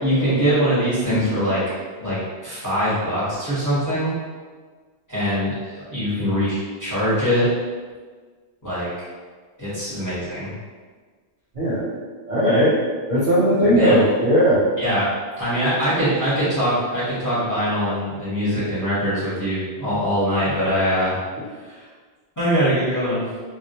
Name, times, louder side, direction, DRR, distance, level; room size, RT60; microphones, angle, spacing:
voice 1, 0.0-1.6 2.0-4.1 5.1-7.5 8.6-8.9 9.6-10.5 13.6-14.0 14.8-15.1 15.4-21.2 21.6-21.8 22.4-23.2, equal, 20° left, -12 dB, 0.8 m, -22 dB
voice 2, 11.5-11.9 12.3-12.7 13.1-14.6, equal, 55° right, -9 dB, 0.6 m, -18 dB
2.2 x 2.1 x 2.7 m, 1.5 s
omnidirectional pair, 1.1 m